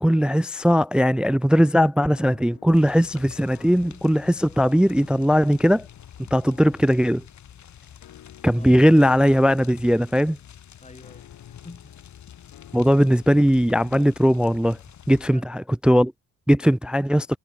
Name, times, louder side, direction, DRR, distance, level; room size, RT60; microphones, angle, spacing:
voice 1, 0.0-5.9 6.3-7.2 8.4-10.4 12.7-14.8 15.1-16.1 16.5-17.3, equal, 5° right, 0.4 m, -19 dB
sound 1, 2.0-14.0, left 12 dB, 70° left, 7.6 m, -52 dB
sound 2, 2.7-15.3, left 9 dB, 55° left, 2.5 m, -47 dB
voice 2, 8.6-8.9 10.8-12.0 12.4-12.6 15.3-15.5 16.5-16.7, left 3 dB, 20° left, 3.9 m, -48 dB
cardioid pair, 85°, 35 cm